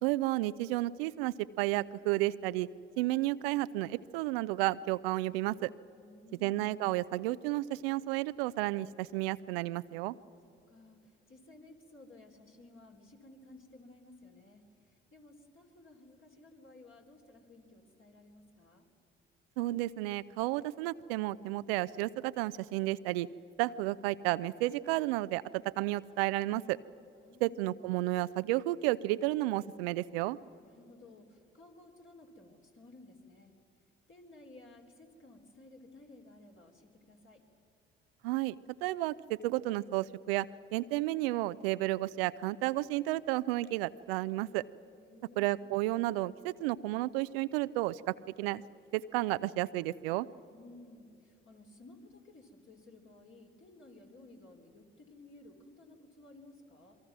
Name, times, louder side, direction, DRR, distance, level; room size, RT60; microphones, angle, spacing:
voice 1, 0.0-2.7 3.0-5.7 6.4-10.1 19.6-23.3 23.6-26.8 27.4-30.4 38.2-38.5 38.8-40.5 40.7-44.6 45.4-48.6 48.9-50.3, right 17 dB, 80° right, 16 dB, 0.5 m, -32 dB
voice 2, 6.0-6.6 10.7-18.9 27.1-27.7 30.6-33.6 34.1-37.4 45.0-45.5 50.5-57.0, left 2 dB, 45° left, 2 dB, 3.8 m, -56 dB
27.0 x 22.5 x 6.0 m, 2.7 s
hypercardioid pair, 45°, 29 cm